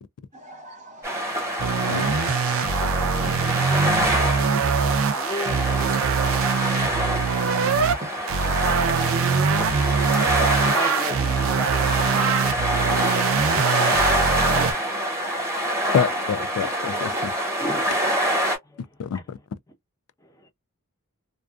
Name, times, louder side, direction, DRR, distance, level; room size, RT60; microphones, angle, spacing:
voice 1, 0.4-1.2 2.6-2.8 3.2-4.1 4.6-5.1 6.6-6.9 7.8-8.1, right 1 dB, 35° right, 0.7 m, -42 dB
sound 1, 1.0-18.6, equal, 10° right, 1.0 m, -26 dB
sound 2, 1.6-8.0 8.3-14.7, right 6 dB, 65° right, 0.4 m, -23 dB
voice 2, 5.1-5.6 10.4-11.9 13.8-15.9 17.6-18.2 18.6-18.8 19.1-19.4 20.2-20.5, equal, 15° left, 0.7 m, -37 dB
voice 3, 15.9-17.3 19.0-19.4, left 7 dB, 80° left, 0.3 m, -27 dB
2.5 x 2.3 x 2.3 m
head